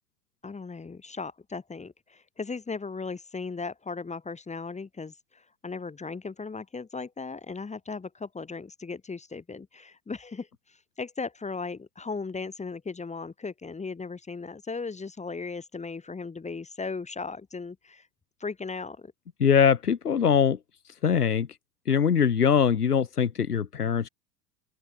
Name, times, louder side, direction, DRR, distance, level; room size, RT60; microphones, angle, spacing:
voice 1, 0.4-18.1 18.4-19.1, left 4 dB, 15° left, 2.3 m, -37 dB
voice 2, 19.4-20.6 21.0-21.5 21.9-24.1, left 7 dB, 90° left, 1.4 m, -22 dB
open air
figure-of-eight pair, 80°, 45 cm